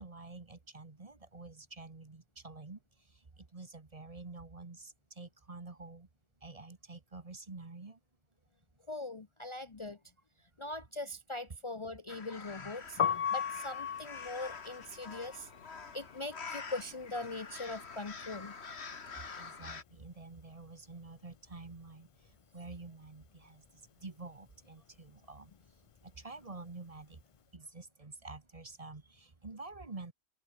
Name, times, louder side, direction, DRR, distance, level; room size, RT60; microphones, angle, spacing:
voice 1, 0.0-2.8 3.4-6.1 6.4-8.0 19.4-22.1 22.5-25.5 26.0-27.2 27.5-30.1, right 3 dB, 35° right, 1.5 m, -48 dB
voice 2, 8.9-10.0 10.6-13.0 13.3-15.5 15.9-18.5, left 2 dB, 30° left, 0.8 m, -41 dB
sound 1, 12.1-19.8, left 5 dB, 80° left, 2.0 m, -47 dB
Piano, 12.9-18.8 19.1-20.7 20.9-27.4, left 8 dB, 50° left, 0.4 m, -39 dB
omnidirectional pair, 1.1 m